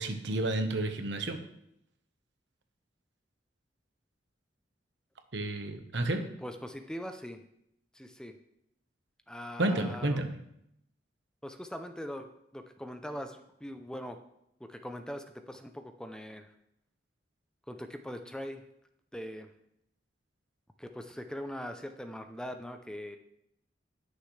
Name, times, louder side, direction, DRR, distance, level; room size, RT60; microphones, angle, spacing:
voice 1, 0.0-1.4 5.3-6.3 9.6-10.4, right 2 dB, 75° right, 6 dB, 1.2 m, -31 dB
voice 2, 6.1-7.4 7.9-8.3 9.3-10.2 11.4-12.3 12.5-14.2 14.6-16.5 17.7-18.6 19.1-19.5 20.8-23.2, equal, 5° left, 7 dB, 0.6 m, -41 dB
19.5 x 6.6 x 3.3 m, 0.78 s
head